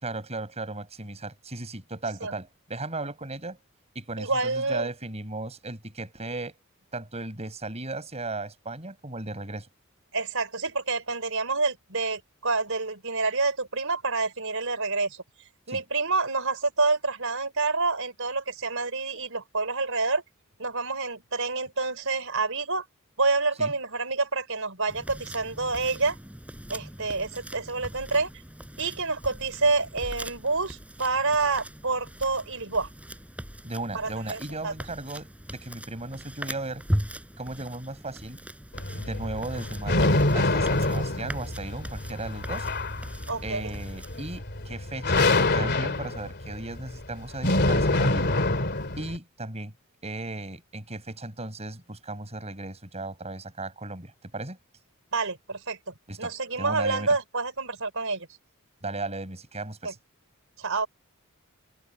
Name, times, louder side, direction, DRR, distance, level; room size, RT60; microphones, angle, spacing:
voice 1, 0.0-3.6 3.9-6.6 6.9-9.7 15.7-15.8 23.6-23.7 33.6-36.8 37.4-38.4 38.9-42.7 43.4-48.3 49.0-49.7 50.0-54.6 56.1-57.1 58.8-60.0, right 2 dB, 30° right, 5.7 m, -36 dB
voice 2, 4.2-4.9 10.1-15.2 15.7-20.2 20.6-22.8 23.2-26.2 26.7-28.3 28.8-32.9 33.9-34.7 43.3-43.7 55.1-55.8 56.2-58.3 59.8-59.9 60.6-60.9, right 3 dB, 65° right, 5.6 m, -28 dB
sound 1, 24.9-44.4, equal, 5° right, 3.9 m, -39 dB
sound 2, 38.7-49.2, left 2 dB, 50° left, 2.9 m, -26 dB
head